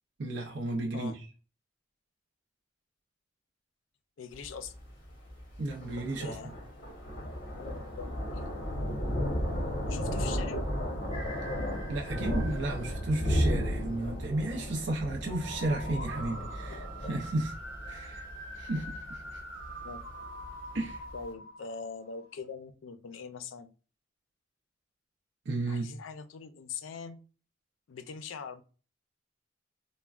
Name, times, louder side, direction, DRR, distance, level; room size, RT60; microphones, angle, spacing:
voice 1, 0.2-1.2 5.6-6.4 11.9-17.5 17.9-18.2 18.5-19.4 20.7-21.0 25.5-25.9, right 2 dB, 65° right, 0.5 m, -33 dB
voice 2, 4.2-4.7 6.2-6.5 7.5-8.4 9.8-10.6 16.7-16.8 18.7-18.8 19.8-20.0 21.1-23.7 25.7-27.2 27.9-28.6, left 5 dB, 85° left, 0.4 m, -42 dB
Thunder, 4.3-21.2, equal, 50° left, 1.0 m, -34 dB
sound 1, 11.1-13.9 15.2-22.3, right 1 dB, 15° right, 1.3 m, -45 dB
3.4 x 2.1 x 2.3 m
head